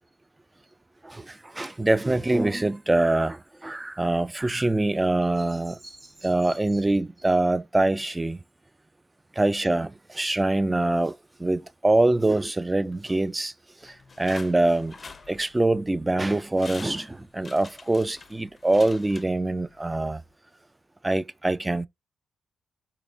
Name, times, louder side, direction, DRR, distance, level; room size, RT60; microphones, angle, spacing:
voice 1, 1.6-3.4 3.6-5.8 6.2-8.4 9.4-9.9 10.2-11.1 11.4-13.5 14.2-14.9 15.3-20.2 21.0-21.9, right 2 dB, 20° right, 0.3 m, -24 dB
sound 1, 13.8-15.8 16.3-16.4 16.6-19.8 20.1-20.2, left 4 dB, 40° left, 0.5 m, -45 dB
3.4 x 2.9 x 2.6 m
hypercardioid pair, 45°, 0 cm